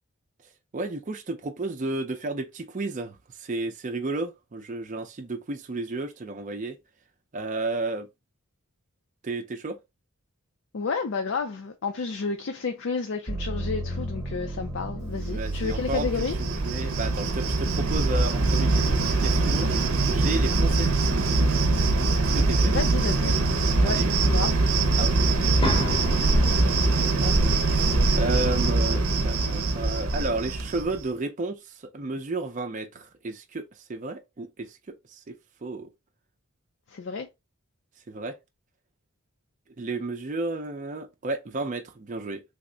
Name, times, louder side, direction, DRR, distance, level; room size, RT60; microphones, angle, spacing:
voice 1, 0.7-6.8 7.3-8.1 9.2-9.8 15.3-16.1 16.4-19.8 20.1-21.7 22.2-22.8 23.8-24.1 25.0-25.6 27.2-35.9 38.1-38.4 39.8-42.4, right 2 dB, 35° right, 0.4 m, -33 dB
voice 2, 10.7-16.4 22.7-23.4 23.8-24.0 24.2-24.6 36.9-37.3, left 4 dB, 55° left, 0.4 m, -31 dB
sound 1, 13.3-21.1 21.6-22.4, right 1 dB, 10° right, 0.9 m, -36 dB
Cricket, 15.3-31.0, right 3 dB, 75° right, 0.6 m, -23 dB
sound 2, 25.6-29.6, equal, 25° left, 0.7 m, -33 dB
3.4 x 2.1 x 3.7 m
head